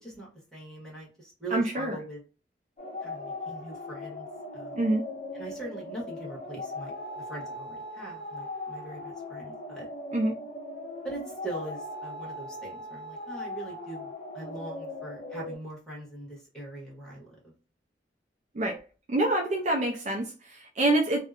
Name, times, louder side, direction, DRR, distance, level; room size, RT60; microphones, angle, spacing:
voice 1, 0.0-2.2 3.0-4.3 4.5-4.9 5.3-9.9 11.0-17.5, right 2 dB, 5° left, -6 dB, 1.2 m, -42 dB
voice 2, 1.5-2.0 4.8-5.1 10.1-10.3 18.5-18.8 19.1-21.2, right 1 dB, 40° right, 1 dB, 0.4 m, -26 dB
sound 1, 2.8-15.6, left 1 dB, 40° left, 0.6 m, -39 dB
2.7 x 2.1 x 2.4 m, 0.35 s
head